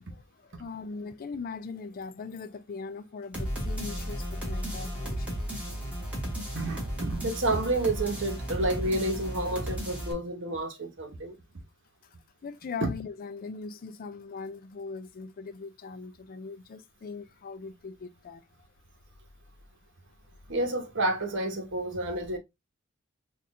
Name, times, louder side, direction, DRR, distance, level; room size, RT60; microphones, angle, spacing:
voice 1, 0.0-5.4 12.4-18.7, left 4 dB, 45° left, 0.4 m, -40 dB
sound 1, 3.3-10.1, equal, 5° right, 1.5 m, -34 dB
voice 2, 6.5-11.4 12.8-12.9 20.5-22.4, right 2 dB, 65° right, 1.1 m, -30 dB
4.2 x 2.5 x 3.6 m
head